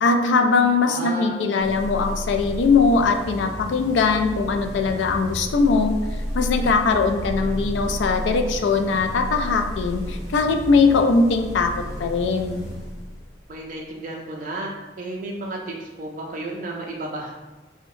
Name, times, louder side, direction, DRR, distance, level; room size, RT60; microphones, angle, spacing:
voice 1, 0.0-6.0 6.3-11.7 12.0-12.6, left 4 dB, 80° left, 5 dB, 0.3 m, -20 dB
voice 2, 0.8-1.4 13.5-14.7 15.0-17.3, right 2 dB, 45° right, -1 dB, 0.3 m, -32 dB
sound 1, 1.6-13.5, equal, 60° left, 0.9 m, -32 dB
3.5 x 2.1 x 3.0 m, 1.1 s
head